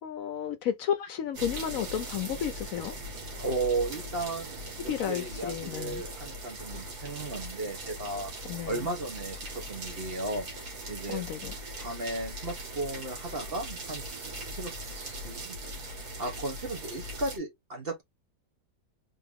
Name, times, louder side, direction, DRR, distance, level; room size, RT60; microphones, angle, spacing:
voice 1, 0.0-2.9 4.9-6.0 8.4-8.9 11.1-11.5, left 9 dB, 70° left, 0.9 m, -32 dB
sound 1, 1.3-17.4, right 1 dB, 75° right, 2.0 m, -40 dB
voice 2, 3.4-8.3 8.7-10.5 10.9-11.2 11.8-15.8 16.2-18.0, right 2 dB, 40° right, 1.2 m, -35 dB
3.7 x 2.9 x 3.4 m
omnidirectional pair, 1.6 m